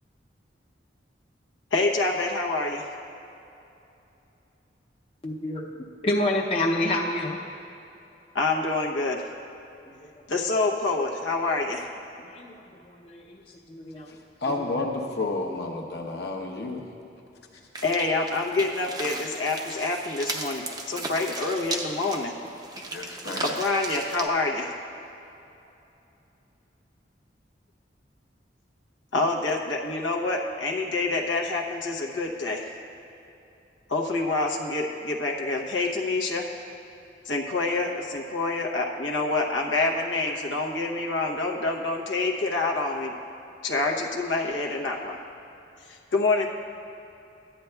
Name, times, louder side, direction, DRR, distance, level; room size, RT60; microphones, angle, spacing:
voice 1, 1.7-2.9 8.3-9.3 10.3-11.9 17.8-22.3 23.0-23.1 23.4-24.7 29.1-32.6 33.9-36.5 37.2-43.1 43.6-45.2 45.9-46.5, left 3 dB, 90° left, 0 dB, 0.9 m, -27 dB
voice 2, 5.2-7.4 9.9-10.1 12.2-13.4 13.7-14.1 14.6-14.7, left 1 dB, 30° left, -2 dB, 0.6 m, -29 dB
voice 3, 14.1-16.8 22.9-23.5, left 2 dB, 60° left, 1 dB, 1.0 m, -31 dB
sound 1, 17.7-24.3, right 2 dB, 20° right, 0.5 m, -36 dB
14.0 x 10.0 x 2.3 m, 2.8 s
head